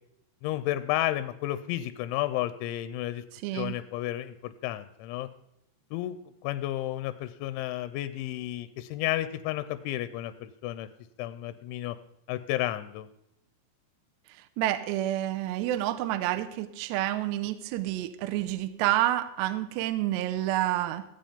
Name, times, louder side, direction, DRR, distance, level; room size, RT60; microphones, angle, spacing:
voice 1, 0.4-3.2 3.5-5.3 5.9-6.2 6.4-10.9 11.2-12.0 12.3-13.1, left 14 dB, 85° left, 12 dB, 3.0 m, -32 dB
voice 2, 3.4-3.7 14.6-21.1, right 14 dB, 85° right, 11 dB, 2.6 m, -29 dB
16.0 x 7.7 x 5.1 m, 0.80 s
omnidirectional pair, 5.3 m